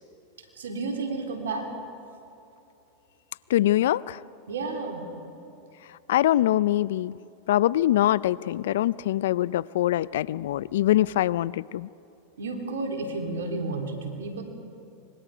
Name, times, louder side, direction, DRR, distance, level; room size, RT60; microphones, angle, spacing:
voice 1, 0.6-1.7 4.5-5.1 12.4-14.4, right 3 dB, 85° right, 2 dB, 3.7 m, -31 dB
voice 2, 3.5-4.2 6.1-7.2 7.5-11.9, left 13 dB, 75° left, 21 dB, 0.4 m, -23 dB
25.5 x 22.0 x 5.0 m, 2.8 s
hypercardioid pair, 105°, 0 cm